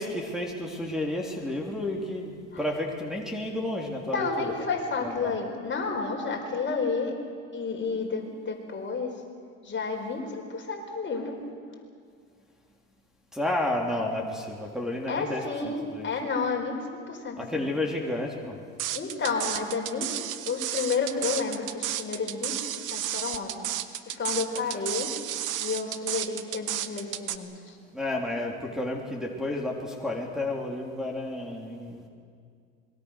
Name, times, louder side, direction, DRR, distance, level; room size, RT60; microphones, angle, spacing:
voice 1, 0.0-4.5 5.0-5.3 13.3-16.1 17.4-18.6 27.9-32.1, left 1 dB, ahead, -3 dB, 3.6 m, -31 dB
voice 2, 4.1-7.2 7.5-9.1 9.6-11.4 15.1-17.7 18.9-23.7 24.1-25.1 25.6-27.8, left 4 dB, 30° left, 3 dB, 4.5 m, -31 dB
sound 1, 18.8-27.4, right 12 dB, 55° right, 1.4 m, -32 dB
26.5 x 22.5 x 6.6 m, 2.2 s
hypercardioid pair, 80°, 36 cm